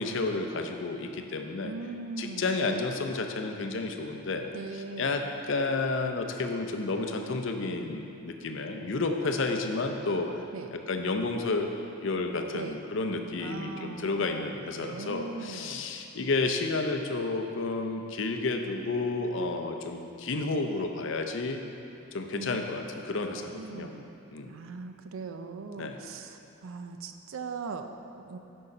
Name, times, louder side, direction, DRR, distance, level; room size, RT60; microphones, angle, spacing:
voice 1, 0.0-1.7 2.2-4.5 5.0-10.3 10.7-11.7 12.0-21.6 22.1-23.9 24.3-24.5 25.8-26.0, left 3 dB, 60° left, 5 dB, 0.5 m, -31 dB
voice 2, 1.6-2.6 4.5-5.2 10.5-10.7 12.5-12.8 13.4-15.9 22.3-22.6 23.5-24.2 24.4-28.4, right 4 dB, 70° right, 7 dB, 0.4 m, -40 dB
6.7 x 5.6 x 4.9 m, 2.9 s
head